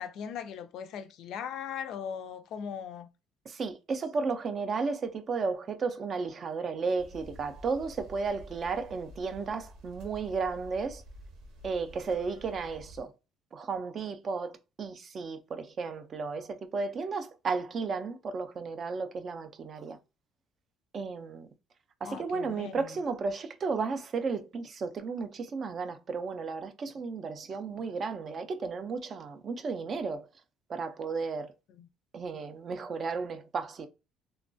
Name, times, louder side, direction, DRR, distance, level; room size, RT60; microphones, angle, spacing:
voice 1, 0.0-3.1 22.0-23.0 31.7-31.9, left 8 dB, 60° left, 0.3 m, -39 dB
voice 2, 3.5-11.0 11.6-13.1 13.5-20.0 20.9-21.5 22.0-30.3 30.7-31.5 32.1-33.9, right 4 dB, 30° right, 0.3 m, -34 dB
sound 1, 7.0-13.0, equal, 75° right, 0.7 m, -50 dB
2.9 x 2.2 x 2.5 m
cardioid pair, 165°, 0 cm